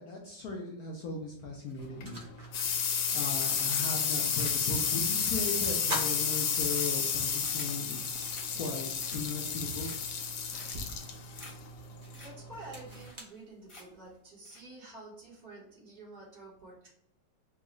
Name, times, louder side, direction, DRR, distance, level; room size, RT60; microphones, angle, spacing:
voice 1, 0.0-2.2 3.1-10.1, left 3 dB, 65° left, -1 dB, 0.9 m, -38 dB
sound 1, 1.0-1.1 1.6-5.0 5.3-5.4 5.8-7.3 7.7-7.8 9.2-9.3 9.9-14.1, right 1 dB, 80° right, 0.3 m, -44 dB
sound 2, 1.8-13.1, left 7 dB, 90° left, 1.4 m, -32 dB
sound 3, 3.6-4.1 4.4-7.8 8.2-8.5 8.9-9.4 9.8-10.2 10.6-11.0 11.4-11.5 11.8-11.9 12.1-12.3 12.6-12.7 12.9-13.4 13.7-14.1 14.4-14.6, left 2 dB, 30° left, 0.5 m, -51 dB
voice 2, 12.1-16.9, right 2 dB, 55° right, -5 dB, 2.0 m, -49 dB
4.5 x 2.4 x 3.0 m, 0.77 s
omnidirectional pair, 2.1 m